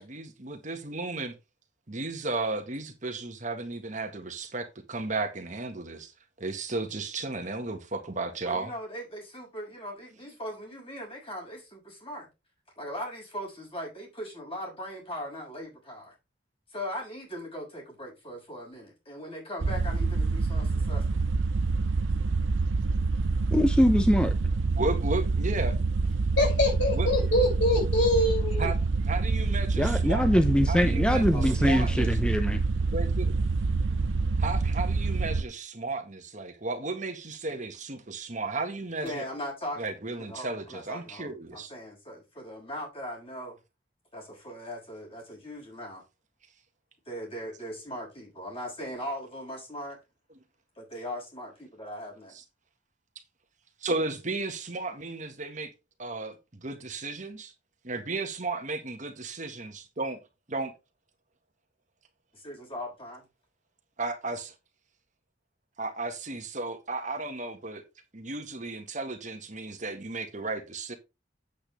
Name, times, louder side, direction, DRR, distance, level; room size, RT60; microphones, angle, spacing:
voice 1, 0.0-1.3 1.9-6.1 6.4-8.7 24.8-25.7 26.9-27.1 28.6-28.8 29.1-30.3 30.7-32.2 32.9-33.4 34.4-39.2 39.8-41.7 52.3-52.4 53.8-55.7 56.0-57.5 57.8-60.2 60.5-60.7 64.0-64.5 65.8-67.8 68.1-70.9, right 3 dB, 40° right, 1.7 m, -34 dB
voice 2, 8.4-12.3 12.8-16.1 16.7-21.0 31.3-31.9 39.0-39.8 40.2-43.6 44.1-46.0 47.1-50.0 50.8-52.4 62.3-63.2, equal, 30° left, 6.5 m, -39 dB
sound 1, 19.6-35.4, right 3 dB, 85° right, 0.7 m, -27 dB
voice 3, 23.5-24.3 29.8-32.6, equal, 5° left, 0.6 m, -23 dB
voice 4, 26.4-28.7, left 1 dB, 70° left, 5.9 m, -24 dB
8.6 x 8.5 x 3.5 m
head